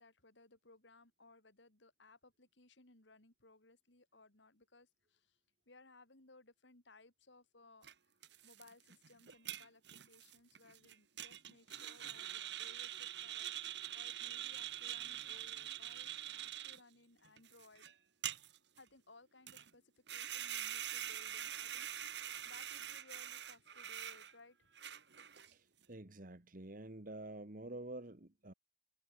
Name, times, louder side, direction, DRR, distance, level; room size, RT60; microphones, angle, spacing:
voice 1, 0.0-5.4 5.7-7.9 8.4-17.9 18.8-24.7, left 3 dB, 70° left, 3.3 m, -63 dB
sound 1, 7.8-7.9 8.2-16.8 17.2-17.9 18.2-18.8 19.5-19.7 20.1-24.3 24.7-25.5, right 11 dB, 60° right, 2.0 m, -45 dB
voice 2, 25.5-28.5, right 2 dB, 45° right, 1.5 m, -48 dB
head